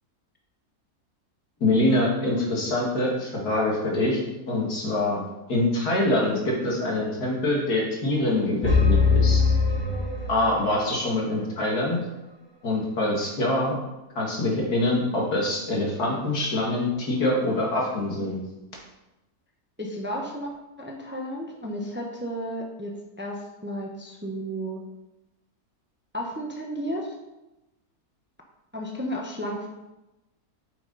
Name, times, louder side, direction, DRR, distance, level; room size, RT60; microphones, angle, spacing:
voice 1, 1.6-5.2 5.5-9.4 10.3-12.0 12.6-13.8 14.2-18.4, left 1 dB, 80° left, -3 dB, 2.5 m, -25 dB
sound 1, 8.6-10.7, left 4 dB, 35° left, 2.9 m, -21 dB
voice 2, 19.8-20.5 20.8-24.8 26.1-27.1 28.7-29.7, equal, 10° right, 0 dB, 0.8 m, -33 dB
8.9 x 5.8 x 4.0 m, 0.99 s
omnidirectional pair, 1.6 m